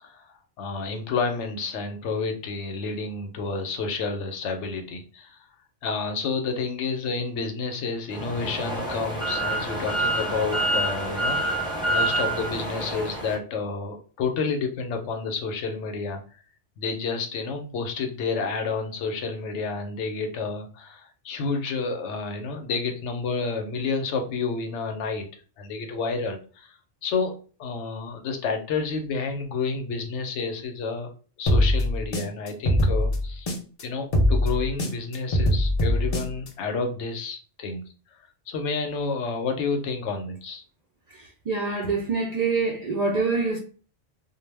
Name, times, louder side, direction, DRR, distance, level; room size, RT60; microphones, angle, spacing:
voice 1, 0.0-5.5 5.8-11.4 11.9-16.4 16.8-25.3 25.6-27.3 27.6-31.1 31.4-33.5 33.8-37.8 38.5-40.6, left 4 dB, 75° left, 0.9 m, -30 dB
sound 1, 8.1-13.4, right 1 dB, 5° right, 0.5 m, -27 dB
sound 2, 31.5-33.8 34.1-36.5, left 1 dB, 50° left, 0.4 m, -22 dB
voice 2, 41.5-43.6, right 4 dB, 70° right, 0.3 m, -25 dB
2.2 x 2.0 x 3.2 m
omnidirectional pair, 1.2 m